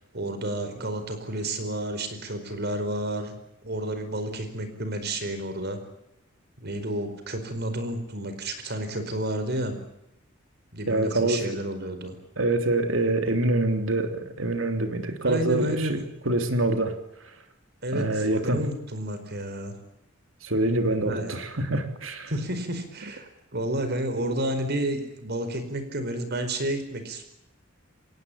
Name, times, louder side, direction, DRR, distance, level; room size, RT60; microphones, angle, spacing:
voice 1, 0.1-3.3 3.6-5.8 6.6-9.8 10.7-12.1 15.2-16.0 17.8-19.7 21.1-21.4 22.3-27.2, right 1 dB, 55° right, 9 dB, 4.8 m, -31 dB
voice 2, 10.9-11.4 12.4-16.0 16.2-16.9 17.2-17.3 17.9-18.6 20.4-22.3, right 2 dB, 75° right, 7 dB, 3.3 m, -25 dB
26.0 x 19.0 x 8.7 m, 0.85 s
head